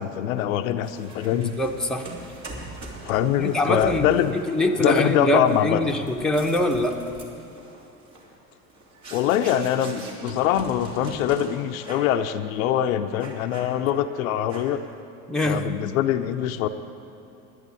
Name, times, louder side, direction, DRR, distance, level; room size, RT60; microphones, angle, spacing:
voice 1, 0.0-1.6 3.1-4.3 4.8-5.8 9.1-14.8 15.4-16.7, left 10 dB, 70° left, 9 dB, 0.7 m, -23 dB
sound 1, 0.8-11.5 11.8-12.2 12.5-12.7 13.2-14.1 14.5-14.9, right 2 dB, 40° right, 3.1 m, -41 dB
voice 2, 1.3-2.1 3.4-7.0 15.3-15.7, left 1 dB, ahead, 2 dB, 1.1 m, -24 dB
11.0 x 10.5 x 8.3 m, 2.8 s
hypercardioid pair, 80°, 43 cm